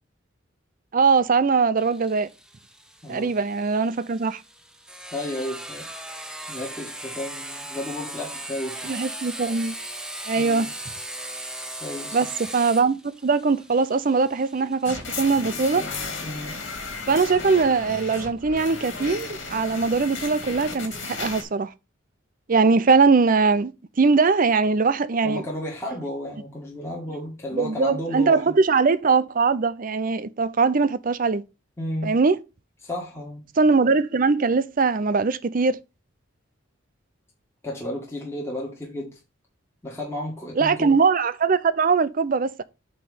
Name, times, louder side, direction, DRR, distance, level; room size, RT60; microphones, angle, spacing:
voice 1, 0.9-2.3 3.1-4.4 8.8-9.7 10.3-10.7 12.1-15.8 17.1-21.7 22.5-23.7 24.0-25.4 27.5-31.4 32.0-32.4 33.6-35.8 40.6-42.6, right 4 dB, 45° right, 0.5 m, -21 dB
Sawing, 1.8-17.2, right 1 dB, 5° right, 0.7 m, -38 dB
voice 2, 3.0-3.3 5.1-5.9 6.5-8.9 10.4-10.7 11.8-12.2 16.2-16.6 25.2-28.5 31.8-32.1 32.8-33.4 37.6-39.1 39.8-41.0, left 1 dB, 15° left, 1.8 m, -33 dB
sound 1, 14.8-21.4, left 4 dB, 65° left, 2.4 m, -34 dB
8.6 x 3.2 x 5.4 m
head